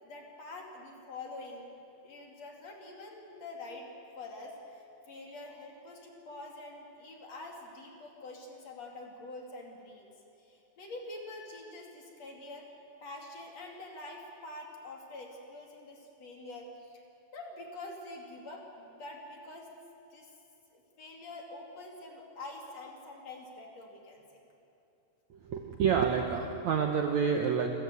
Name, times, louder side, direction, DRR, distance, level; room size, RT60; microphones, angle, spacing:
voice 1, 0.0-3.9 4.2-10.1 10.4-12.7 13.0-17.0 17.3-19.7 20.1-20.3 20.7-24.2, left 2 dB, 45° left, 1 dB, 3.2 m, -46 dB
voice 2, 25.5-27.7, right 6 dB, 90° right, 3 dB, 1.6 m, -28 dB
30.0 x 14.0 x 8.3 m, 2.9 s
omnidirectional pair, 4.9 m